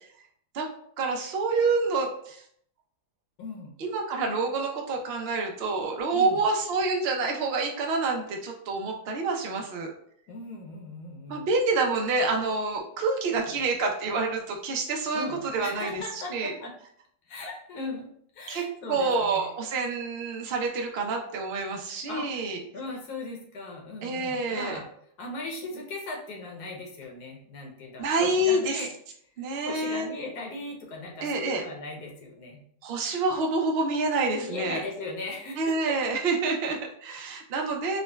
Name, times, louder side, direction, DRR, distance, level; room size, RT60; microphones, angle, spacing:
voice 1, 1.0-2.4 3.8-9.9 11.3-15.3 15.5-16.0 16.3-16.5 18.5-22.6 24.0-24.8 28.0-28.8 29.4-30.1 31.2-31.6 32.8-34.8 35.6-38.0, right 3 dB, 75° right, 2 dB, 0.5 m, -27 dB
voice 2, 3.4-3.7 6.1-6.4 10.3-11.5 13.3-13.5 15.1-16.7 17.3-19.5 21.1-21.2 22.1-24.9 25.2-28.9 29.2-29.3 29.6-32.6 34.4-36.2, left 2 dB, 75° left, 0 dB, 1.3 m, -38 dB
4.8 x 2.1 x 2.2 m, 0.66 s
omnidirectional pair, 1.7 m